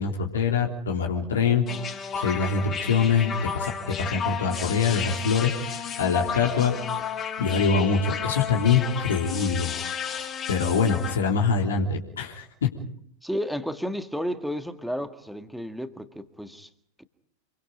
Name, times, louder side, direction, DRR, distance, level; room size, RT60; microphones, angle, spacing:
voice 1, 0.0-1.6 2.2-6.7 7.4-9.7 10.5-12.7, left 5 dB, 65° left, 0 dB, 3.4 m, -24 dB
sound 1, 1.7-11.2, left 7 dB, 25° left, 3.1 m, -32 dB
voice 2, 13.2-16.7 17.0-17.1, equal, ahead, 8 dB, 1.8 m, -32 dB
28.0 x 23.0 x 5.2 m, 0.66 s
figure-of-eight pair, 90°, 0 cm